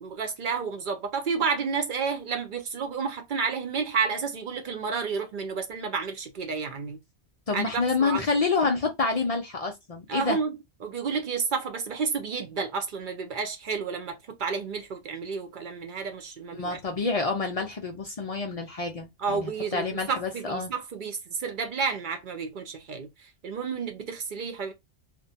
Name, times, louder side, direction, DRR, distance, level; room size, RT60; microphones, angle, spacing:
voice 1, 0.0-7.0 7.5-7.6 8.0-8.2 10.1-16.8 19.2-24.7, right 5 dB, 55° right, 0.6 m, -31 dB
voice 2, 7.5-10.4 16.5-20.7, left 4 dB, 60° left, 0.4 m, -28 dB
2.6 x 2.1 x 2.6 m
omnidirectional pair, 1.2 m